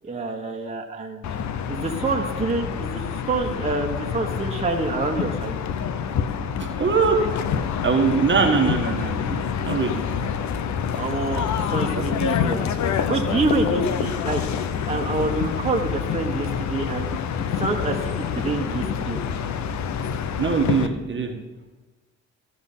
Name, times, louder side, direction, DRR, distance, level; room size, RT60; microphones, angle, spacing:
voice 1, 0.0-1.2 1.7-3.0 3.3-5.6 11.0-12.7 13.1-17.2 17.5-19.2, right 3 dB, 20° right, 0 dB, 1.3 m, -27 dB
sound 1, 1.2-20.9, left 7 dB, 65° left, 0.8 m, -27 dB
voice 2, 6.6-7.3 7.8-10.0 11.9-12.0 20.4-21.4, right 5 dB, 40° right, 3 dB, 1.4 m, -22 dB
14.5 x 6.2 x 5.6 m, 1.2 s
cardioid pair, 90°, 30 cm